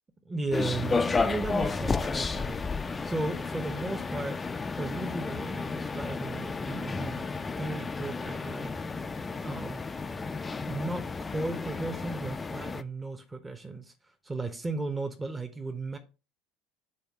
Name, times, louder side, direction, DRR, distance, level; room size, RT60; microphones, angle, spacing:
voice 1, 0.2-4.4 4.7-8.7 9.4-9.9 10.6-11.0 11.3-13.9 14.2-16.0, right 2 dB, 15° right, 0.9 m, -35 dB
sound 1, 0.5-12.8, left 4 dB, 20° left, 0.4 m, -32 dB
7.9 x 3.5 x 3.5 m
hypercardioid pair, 70°, 0 cm